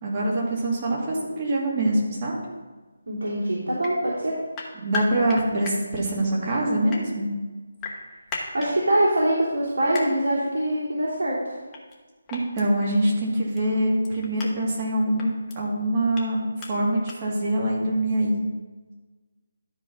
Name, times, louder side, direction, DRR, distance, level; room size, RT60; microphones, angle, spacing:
voice 1, 0.0-2.3 4.8-7.3 12.3-15.3 15.6-18.4, right 1 dB, 30° right, -3 dB, 2.4 m, -24 dB
voice 2, 3.1-4.3 8.5-11.4, right 1 dB, 80° right, -8 dB, 3.3 m, -23 dB
sound 1, 3.8-3.9 4.5-5.8 6.7-7.0 7.8-8.7 9.9-10.1 11.7-12.0 12.3-12.6 13.5-13.6 14.0-14.5 15.2-15.6 16.1-16.2 16.6-16.7 17.1-17.2, left 5 dB, 15° left, 1.1 m, -34 dB
12.5 x 4.3 x 5.6 m, 1.3 s
figure-of-eight pair, 165°, 0 cm